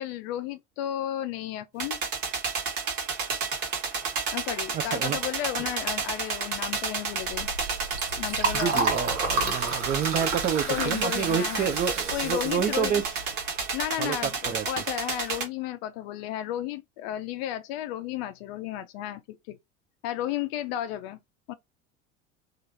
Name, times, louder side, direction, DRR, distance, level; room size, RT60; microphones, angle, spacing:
voice 1, 0.0-2.0 4.3-7.5 8.2-8.9 10.7-11.7 12.1-13.0 13.7-19.6 20.0-21.2 21.5-21.6, left 12 dB, 60° left, 0.4 m, -33 dB
sound 1, 1.8-15.4, right 5 dB, 50° right, 1.4 m, -31 dB
voice 2, 4.7-5.2 8.5-13.2 14.0-14.7, right 8 dB, 25° right, 0.4 m, -29 dB
Liquid, 7.1-13.8, right 3 dB, 85° right, 1.0 m, -32 dB
3.0 x 2.5 x 2.6 m
hypercardioid pair, 75°, 36 cm